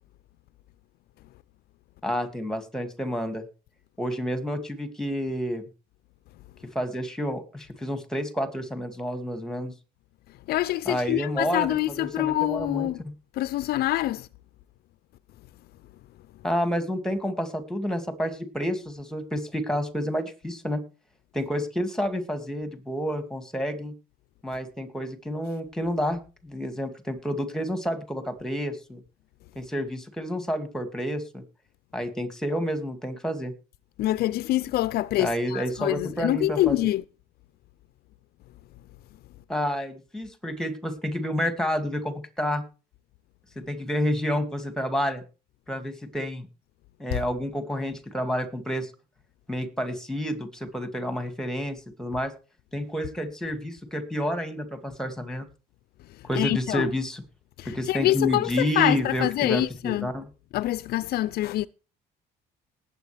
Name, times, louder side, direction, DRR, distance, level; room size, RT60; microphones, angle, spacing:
voice 1, 2.0-3.4 4.0-5.6 6.7-9.7 10.9-13.1 16.4-20.8 21.3-23.9 24.4-29.0 29.6-31.4 31.9-33.5 35.2-36.8 39.5-42.6 43.6-45.2 45.7-46.5 47.0-48.9 49.5-52.3 52.7-55.5 56.2-57.2 57.6-60.3, equal, 5° left, 2.3 m, -29 dB
voice 2, 10.5-13.0 13.3-14.3 34.0-37.0 47.1-47.2 56.3-56.9 57.6-60.1 60.5-61.7, left 15 dB, 70° left, 0.5 m, -25 dB
19.5 x 8.0 x 3.4 m
cardioid pair, 110°, 17 cm